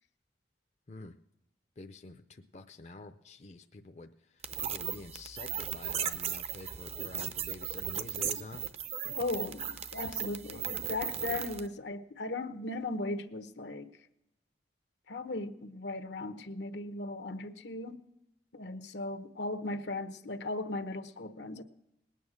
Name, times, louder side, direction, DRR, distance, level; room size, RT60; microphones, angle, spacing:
voice 1, 1.8-8.6 9.0-9.1 10.5-10.7, left 2 dB, 40° left, 6 dB, 0.5 m, -48 dB
sound 1, 4.4-11.7, right 8 dB, 35° right, 0.6 m, -37 dB
voice 2, 9.1-14.0 15.1-18.0 18.5-21.6, left 2 dB, 80° left, 9 dB, 1.0 m, -37 dB
19.5 x 9.2 x 6.4 m, 0.90 s
head